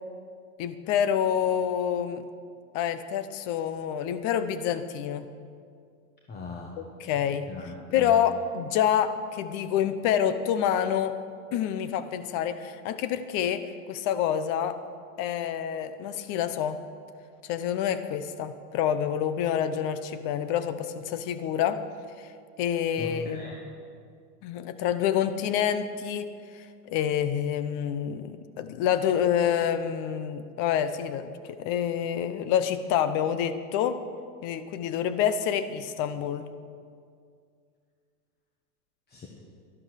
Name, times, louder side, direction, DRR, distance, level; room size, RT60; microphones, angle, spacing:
voice 1, 0.6-2.2 2.7-5.3 6.8-7.5 7.9-11.2 11.5-14.8 15.2-16.8 17.4-21.8 22.6-23.6 24.4-34.0 34.4-36.5, left 9 dB, 40° left, 12 dB, 0.9 m, -27 dB
voice 2, 6.3-6.7 7.1-8.1 23.0-23.6 39.1-39.3, left 4 dB, 20° left, 0 dB, 1.3 m, -39 dB
12.5 x 12.0 x 6.6 m, 2.2 s
supercardioid pair, 135°, 46 cm